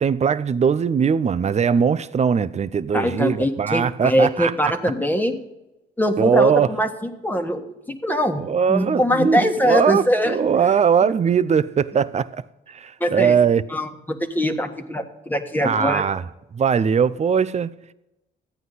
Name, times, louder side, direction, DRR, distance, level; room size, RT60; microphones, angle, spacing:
voice 1, 0.0-4.5 6.2-6.7 8.4-12.3 12.7-13.6 15.6-16.2 16.5-17.7, right 7 dB, 35° right, 0.6 m, -20 dB
voice 2, 2.9-5.4 6.0-7.7 8.0-8.4 8.7-10.7 11.0-11.1 13.0-13.3 13.7-13.9 14.3-16.1, equal, 10° left, 1.4 m, -22 dB
14.5 x 9.3 x 4.1 m
cardioid pair, 90°, 20 cm